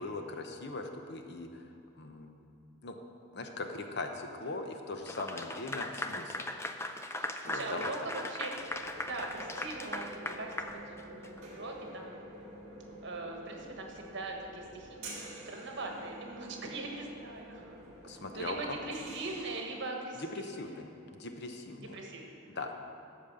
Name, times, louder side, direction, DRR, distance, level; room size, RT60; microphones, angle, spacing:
voice 1, 0.0-2.4 2.8-3.0 3.3-6.5 7.4-7.9 18.0-18.8 20.2-22.0 22.6-22.7, left 3 dB, 50° left, 5 dB, 0.8 m, -40 dB
Clapping / Applause, 5.1-11.4, left 2 dB, 10° left, 0.4 m, -39 dB
voice 2, 7.1-8.8 9.0-12.2 13.0-17.8 18.3-21.3 21.8-22.6, right 2 dB, 55° right, 1 dB, 1.3 m, -42 dB
sound 1, 8.5-19.6, right 1 dB, 35° right, 2.0 m, -48 dB
12.5 x 5.2 x 6.9 m, 2.6 s
head